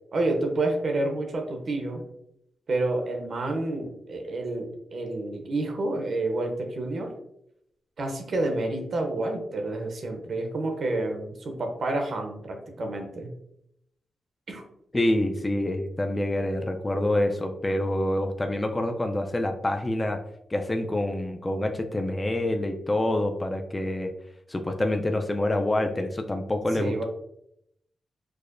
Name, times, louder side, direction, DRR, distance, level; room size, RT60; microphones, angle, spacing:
voice 1, 0.1-2.0 2.7-7.1 8.0-13.3 14.5-14.6 26.7-27.0, right 2 dB, 60° right, 3 dB, 0.7 m, -29 dB
voice 2, 14.9-20.2 20.5-24.1 24.5-27.0, left 1 dB, 20° left, 4 dB, 0.4 m, -26 dB
4.7 x 2.1 x 2.5 m, 0.76 s
cardioid pair, 75°, 0 cm